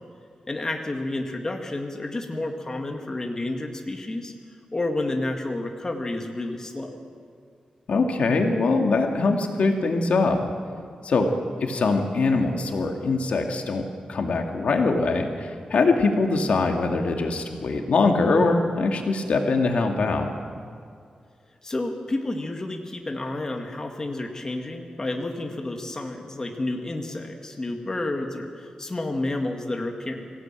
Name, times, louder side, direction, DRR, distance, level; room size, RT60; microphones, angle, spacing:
voice 1, 0.5-4.3 4.7-7.0 21.6-30.3, left 2 dB, 25° left, 3 dB, 2.0 m, -30 dB
voice 2, 7.9-10.4 11.0-11.3 11.6-13.8 14.1-20.3, left 3 dB, 70° left, 3 dB, 2.3 m, -22 dB
25.0 x 16.5 x 9.0 m, 2.2 s
wide cardioid pair, 145°, 2 cm